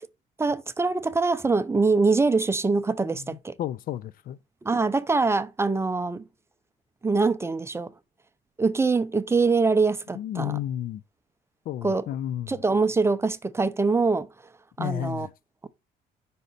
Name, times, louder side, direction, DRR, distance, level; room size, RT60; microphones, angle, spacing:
voice 1, 0.4-3.5 4.6-6.2 7.0-7.9 8.6-10.6 11.8-12.0 12.5-14.3 14.8-15.3, right 4 dB, 15° right, 0.5 m, -24 dB
voice 2, 3.0-4.4 10.1-11.0 11.7-12.6 14.8-15.3, left 11 dB, 60° left, 0.4 m, -32 dB
5.5 x 5.1 x 4.0 m
cardioid pair, 110°, 17 cm